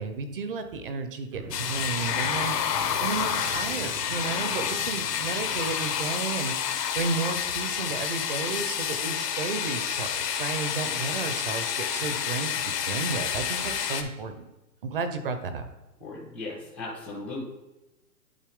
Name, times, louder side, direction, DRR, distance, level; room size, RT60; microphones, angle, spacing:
voice 1, 0.0-14.5 14.8-15.6, right 4 dB, 35° right, 8 dB, 0.6 m, -33 dB
sound 1, 1.3-6.3, right 6 dB, 55° right, 0.9 m, -43 dB
sound 2, 1.5-14.0, left 8 dB, 70° left, 1.1 m, -29 dB
voice 2, 16.0-17.4, left 2 dB, 5° left, -9 dB, 0.4 m, -37 dB
11.0 x 4.2 x 3.6 m, 1.0 s
hypercardioid pair, 155°, 49 cm